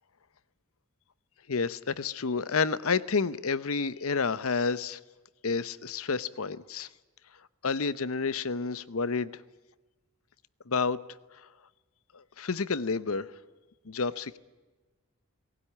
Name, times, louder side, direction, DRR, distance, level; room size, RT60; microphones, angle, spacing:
voice 1, 1.5-5.0 5.4-6.9 7.6-9.3 10.7-11.0 12.1-13.3 13.9-14.4, left 4 dB, 70° left, 0.8 m, -29 dB
19.0 x 18.0 x 10.0 m
head